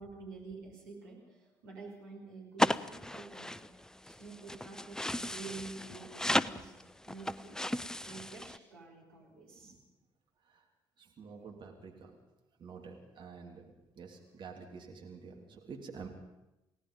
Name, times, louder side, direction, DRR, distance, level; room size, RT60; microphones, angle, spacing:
voice 1, 0.0-3.5 4.0-6.7 7.1-9.7, right 3 dB, 75° right, -2 dB, 5.5 m, -48 dB
sound 1, 2.6-8.6, left 1 dB, 5° left, 0.7 m, -35 dB
voice 2, 11.0-12.2 12.6-16.1, right 5 dB, 45° right, 2 dB, 3.0 m, -49 dB
29.0 x 17.5 x 5.4 m, 0.96 s
figure-of-eight pair, 50°, 11 cm